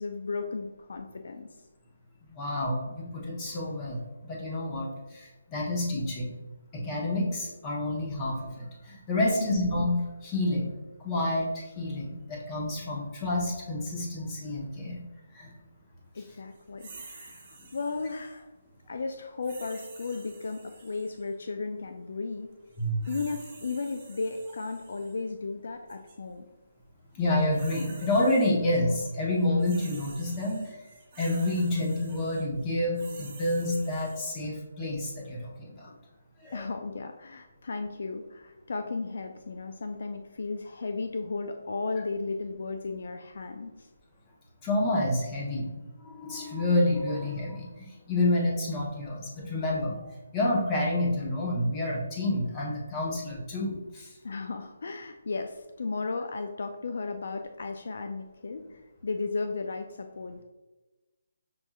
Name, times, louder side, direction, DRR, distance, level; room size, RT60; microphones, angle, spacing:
voice 1, 0.0-1.5 9.2-9.5 16.1-18.5 18.9-22.5 23.1-26.5 35.9-36.0 36.5-43.9 54.2-60.4, left 4 dB, 65° left, 6 dB, 0.3 m, -35 dB
voice 2, 2.3-6.3 6.7-10.7 11.0-15.0 15.3-15.5 22.8-23.1 27.1-30.8 31.2-35.9 36.4-36.6 44.6-50.0 50.3-54.1, left 1 dB, 20° left, -3 dB, 0.9 m, -29 dB
sound 1, 16.8-18.4 19.4-21.3 22.7-25.2 25.9-26.1 27.2-28.8 29.1-34.2, right 4 dB, 35° right, 1.3 m, -50 dB
6.1 x 2.6 x 2.3 m, 1.1 s
hypercardioid pair, 160°, 0 cm